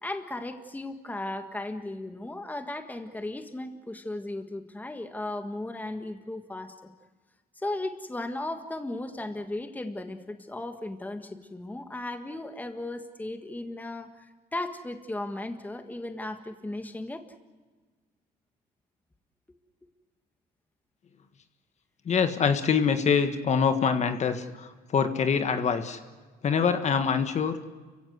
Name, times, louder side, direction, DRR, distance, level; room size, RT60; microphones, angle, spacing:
voice 1, 0.0-6.7 7.6-17.3, left 2 dB, 10° left, 7 dB, 1.6 m, -36 dB
voice 2, 22.0-26.0 26.4-27.6, left 6 dB, 40° left, 8 dB, 1.6 m, -25 dB
30.0 x 16.0 x 8.1 m, 1.4 s
cardioid pair, 110°, 17 cm